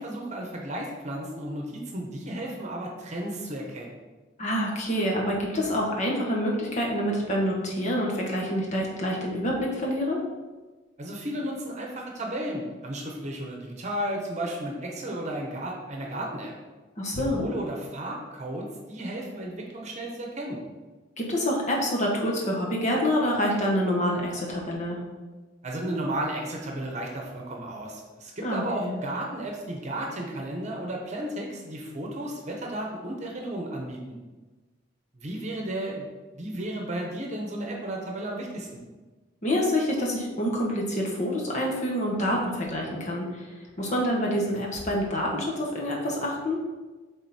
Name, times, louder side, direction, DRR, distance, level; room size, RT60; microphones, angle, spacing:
voice 1, 0.0-4.0 11.0-16.5 17.1-20.6 25.6-34.2 35.1-36.1 36.3-38.8, right 1 dB, 40° right, 0 dB, 1.0 m, -33 dB
voice 2, 4.4-10.2 17.0-17.4 21.2-25.0 28.4-29.0 39.4-43.5 43.8-46.6, equal, 40° left, -2 dB, 1.4 m, -27 dB
8.0 x 3.7 x 4.3 m, 1.3 s
head